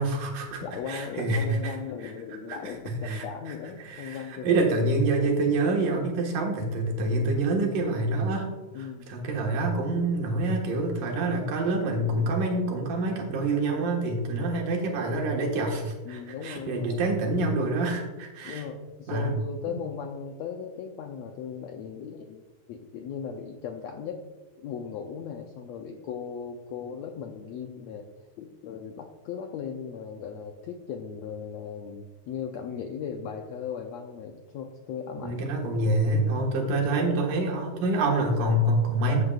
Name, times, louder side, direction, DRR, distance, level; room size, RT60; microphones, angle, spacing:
voice 1, 0.0-1.8 2.0-2.1 2.5-3.2 3.8-8.5 8.8-18.6 19.1-19.4 35.2-39.2, right 2 dB, 75° right, 0 dB, 3.1 m, -26 dB
voice 2, 0.6-4.6 5.2-5.3 8.7-9.1 14.3-14.5 16.0-17.0 18.4-22.4 22.7-24.2 24.6-28.1 28.4-35.4, left 7 dB, 85° left, 3 dB, 1.5 m, -37 dB
13.0 x 8.8 x 2.4 m, 1.2 s
omnidirectional pair, 3.8 m